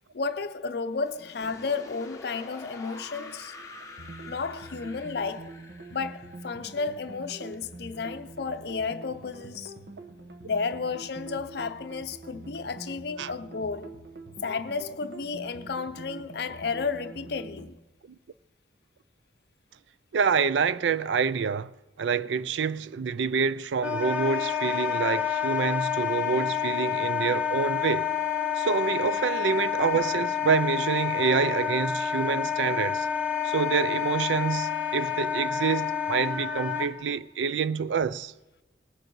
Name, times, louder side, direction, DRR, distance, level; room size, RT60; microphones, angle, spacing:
voice 1, 0.1-3.5 4.3-5.5 5.9-9.7 10.4-14.0 14.4-17.7 28.4-28.6, left 4 dB, 60° left, 0.6 m, -32 dB
sound 1, 1.1-8.0, left 2 dB, 15° left, 1.1 m, -47 dB
sound 2, 4.0-17.7, right 2 dB, 55° right, 1.1 m, -45 dB
voice 2, 20.1-21.7 22.0-28.1 28.6-33.1 33.4-38.3, right 6 dB, 75° right, 0.4 m, -27 dB
Wind instrument woodwind instrument, 23.8-36.9, left 9 dB, 10° right, 1.9 m, -28 dB
19.5 x 7.7 x 4.6 m
head